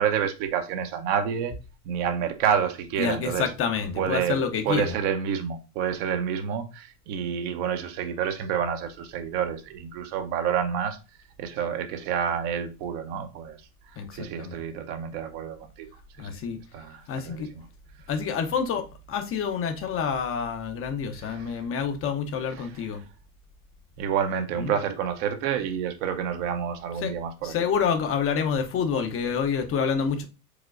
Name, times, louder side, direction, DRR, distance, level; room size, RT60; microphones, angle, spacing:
voice 1, 0.0-1.6 1.8-3.5 4.0-11.0 11.4-13.6 13.9-15.9 16.2-16.4 16.7-17.6 21.2-21.6 22.6-22.7 24.0-27.6, right 8 dB, 50° right, 0.9 m, -29 dB
voice 2, 3.0-4.9 14.0-14.6 16.2-16.6 17.1-17.5 18.1-23.0 24.6-24.7 27.0-27.1 27.4-30.2, left 6 dB, 30° left, 0.8 m, -28 dB
4.9 x 3.8 x 2.4 m
hypercardioid pair, 85°, 45 cm